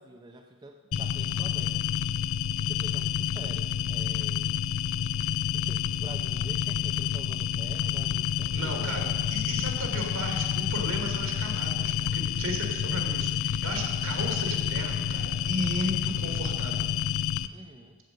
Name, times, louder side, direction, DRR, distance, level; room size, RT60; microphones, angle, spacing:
voice 1, 0.0-1.9 2.7-4.6 5.5-8.9 17.5-18.0, right 1 dB, 20° right, 2 dB, 0.5 m, -47 dB
sound 1, 0.9-17.5, left 9 dB, 65° left, 0.4 m, -29 dB
voice 2, 8.5-16.9, right 1 dB, 65° right, 2 dB, 2.2 m, -35 dB
15.5 x 6.7 x 5.2 m, 1.5 s
head